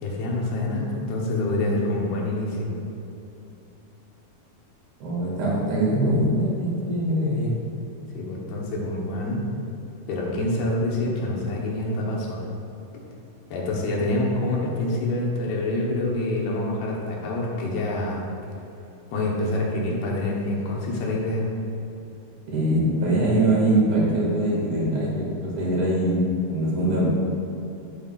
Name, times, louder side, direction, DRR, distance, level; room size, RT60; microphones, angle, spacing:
voice 1, 0.0-2.8 8.1-9.4 10.1-12.4 13.5-18.3 19.1-21.5, left 1 dB, 80° left, -3 dB, 3.2 m, -26 dB
voice 2, 5.0-7.5 22.5-26.2 26.5-27.1, right 1 dB, 70° right, -6 dB, 4.0 m, -22 dB
10.5 x 9.0 x 2.5 m, 2.9 s
omnidirectional pair, 4.6 m